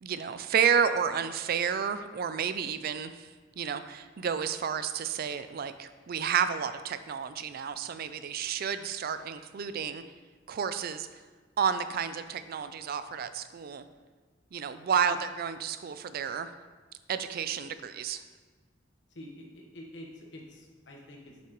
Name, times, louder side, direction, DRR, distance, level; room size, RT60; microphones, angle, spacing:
voice 1, 0.0-3.3 3.6-10.0 10.5-11.1 11.6-13.8 14.5-16.5 17.1-18.2, right 7 dB, 55° right, 11 dB, 0.4 m, -31 dB
voice 2, 19.1-21.5, left 1 dB, 70° left, 0 dB, 1.2 m, -47 dB
7.3 x 5.8 x 3.0 m, 1.4 s
head